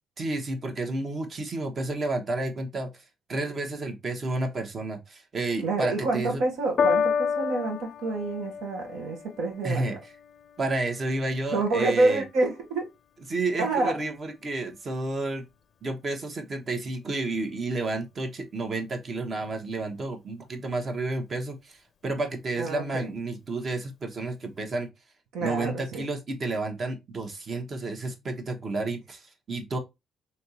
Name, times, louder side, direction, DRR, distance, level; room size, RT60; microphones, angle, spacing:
voice 1, 0.2-3.0 3.3-6.4 9.6-10.0 10.6-12.2 13.3-15.5 15.8-24.9 25.4-29.8, right 2 dB, 45° right, 1.0 m, -31 dB
voice 2, 5.6-9.9 11.5-12.8 13.6-14.0 22.6-23.1 25.3-26.1, right 2 dB, 90° right, 1.2 m, -27 dB
Piano, 6.8-13.4 14.2-14.3, left 6 dB, 50° left, 0.4 m, -31 dB
3.4 x 2.8 x 2.8 m
cardioid pair, 90°, 0 cm